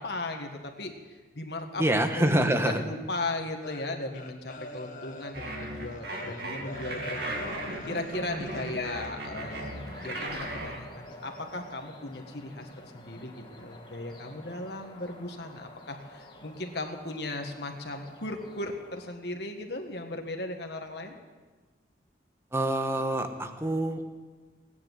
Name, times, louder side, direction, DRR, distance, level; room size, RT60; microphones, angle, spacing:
voice 1, 0.0-1.8 2.2-21.2, left 2 dB, 60° left, 3 dB, 1.7 m, -37 dB
voice 2, 1.8-2.8 22.5-24.0, right 1 dB, 15° right, 6 dB, 1.1 m, -26 dB
sound 1, 3.6-9.0 9.5-9.7, left 1 dB, 45° left, 1.7 m, -43 dB
sound 2, 5.3-10.8, right 1 dB, 60° right, 2.4 m, -36 dB
sound 3, 9.4-19.2, left 1 dB, 25° left, 2.0 m, -49 dB
17.5 x 9.8 x 8.0 m, 1.3 s
head